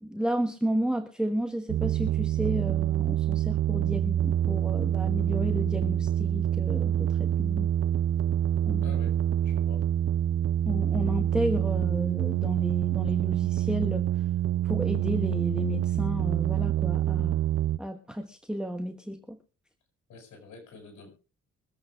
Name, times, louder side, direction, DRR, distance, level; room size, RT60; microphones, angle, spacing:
voice 1, 0.0-7.7 8.6-9.0 10.7-14.3 14.6-17.4 17.8-19.4, equal, 5° right, 5 dB, 1.3 m, -32 dB
sound 1, 1.7-17.8, right 11 dB, 50° right, 0.8 m, -26 dB
voice 2, 8.8-9.8 20.1-21.1, left 4 dB, 70° left, 4 dB, 7.0 m, -48 dB
23.5 x 8.2 x 3.6 m, 0.35 s
cardioid pair, 90°, 30 cm